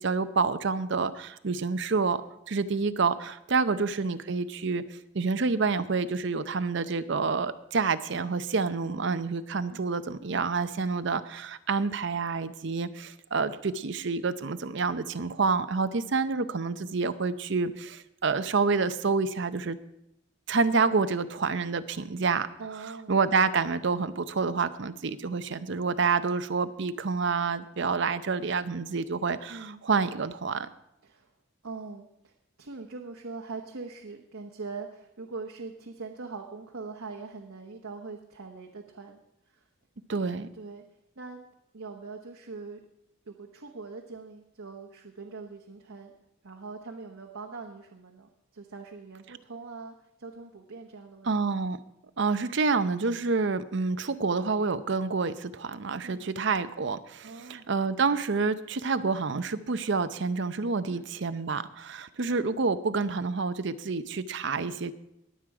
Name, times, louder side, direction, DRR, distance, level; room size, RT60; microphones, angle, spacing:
voice 1, 0.0-2.2 2.5-19.8 20.5-22.5 23.1-30.7 40.1-40.5 51.2-51.8 52.2-64.9, right 4 dB, 60° right, 12 dB, 0.7 m, -28 dB
voice 2, 22.6-23.1 29.5-29.8 31.0-31.3 31.6-32.3 32.6-39.2 39.5-39.6 40.5-40.8 41.2-41.4 41.7-42.8 43.3-46.1 46.4-51.3 56.0-56.3 57.2-57.7 60.9-61.1 64.4-64.8, right 4 dB, 85° right, 2 dB, 1.1 m, -42 dB
20.5 x 7.7 x 4.8 m, 0.82 s
head